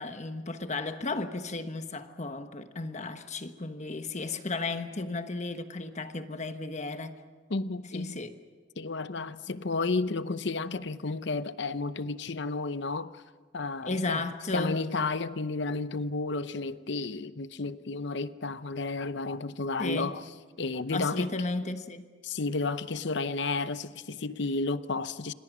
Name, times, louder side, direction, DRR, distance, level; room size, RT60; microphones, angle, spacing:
voice 1, 0.0-7.1 7.9-8.3 13.8-14.8 19.8-20.1 20.9-22.1, left 3 dB, 35° left, 1.3 m, -34 dB
voice 2, 7.5-8.2 8.8-13.2 13.5-14.2 14.5-20.2 20.6-21.3 22.2-25.3, left 3 dB, 60° left, 0.8 m, -32 dB
27.5 x 25.5 x 6.2 m
head